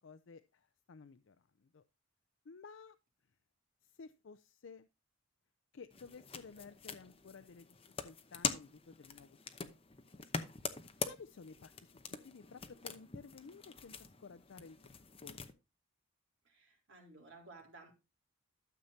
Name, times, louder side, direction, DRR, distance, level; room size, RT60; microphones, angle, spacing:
voice 1, 0.0-1.8 2.5-3.0 3.8-4.9 5.7-7.8 8.0-9.8 10.1-10.3 11.0-14.8 15.2-15.4, left 5 dB, 60° left, 0.4 m, -54 dB
sound 1, 5.9-15.5, left 5 dB, 25° left, 0.8 m, -44 dB
voice 2, 16.4-17.9, right 3 dB, 60° right, 3.5 m, -56 dB
13.0 x 7.2 x 2.7 m
head